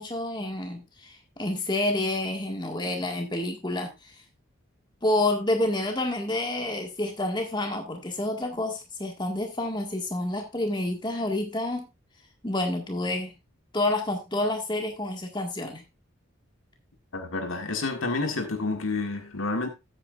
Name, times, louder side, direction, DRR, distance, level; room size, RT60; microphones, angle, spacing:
voice 1, 0.0-4.1 5.0-11.9 12.4-13.3 13.7-15.8, left 1 dB, 20° left, 1.7 m, -29 dB
voice 2, 17.1-19.7, left 3 dB, 75° left, 1.8 m, -29 dB
13.0 x 8.7 x 2.5 m
head